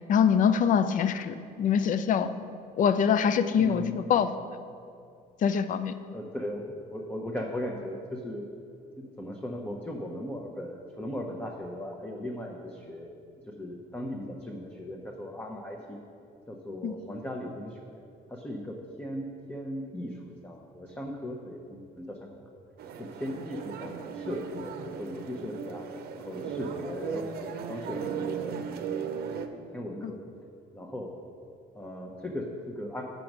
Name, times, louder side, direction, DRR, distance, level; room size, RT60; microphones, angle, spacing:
voice 1, 0.1-2.3 2.8-4.3 5.4-5.9 16.8-16.9 30.0-30.2, left 7 dB, 50° left, 12 dB, 0.5 m, -24 dB
voice 2, 3.5-4.0 6.1-8.6 9.0-13.1 13.5-16.0 16.5-17.8 18.3-22.4 23.0-25.9 26.2-30.2 30.7-31.1 31.7-33.0, left 1 dB, 10° left, 0 dB, 0.8 m, -38 dB
sound 1, 22.8-29.5, right 7 dB, 65° right, 0.7 m, -37 dB
7.5 x 5.3 x 6.0 m, 2.4 s
cardioid pair, 110°, 17 cm